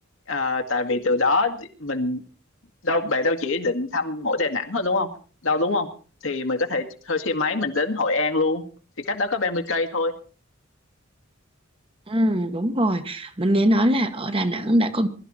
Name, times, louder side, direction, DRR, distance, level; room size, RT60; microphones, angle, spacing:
voice 1, 0.3-2.2 2.8-5.1 5.4-5.9 6.2-8.6 9.1-10.1, left 3 dB, 70° left, 2.0 m, -24 dB
voice 2, 12.1-15.1, equal, 25° right, 1.2 m, -22 dB
21.5 x 12.5 x 4.3 m
head